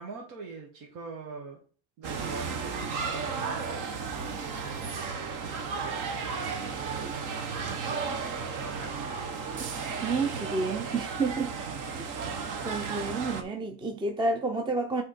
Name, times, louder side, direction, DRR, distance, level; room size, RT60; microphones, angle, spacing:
voice 1, 0.0-1.6 2.0-4.4 5.7-7.1 7.8-8.1 8.3-9.2 11.7-12.1, right 4 dB, 80° right, 1.7 m, -44 dB
sound 1, 2.0-13.4, right 5 dB, 60° right, 1.2 m, -34 dB
voice 2, 10.0-11.5 12.0-12.1 12.6-15.0, right 3 dB, 15° right, 0.5 m, -30 dB
7.7 x 3.5 x 4.4 m
cardioid pair, 140°, 36 cm